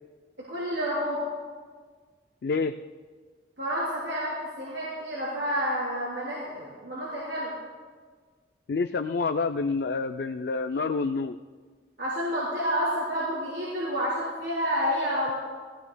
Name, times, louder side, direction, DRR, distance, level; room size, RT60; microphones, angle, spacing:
voice 1, 0.5-1.3 3.6-7.5 12.0-15.3, equal, 75° right, -7 dB, 3.8 m, -29 dB
voice 2, 2.4-2.7 8.7-11.4, left 4 dB, 60° left, 7 dB, 0.4 m, -28 dB
19.0 x 16.0 x 2.3 m, 1.5 s
head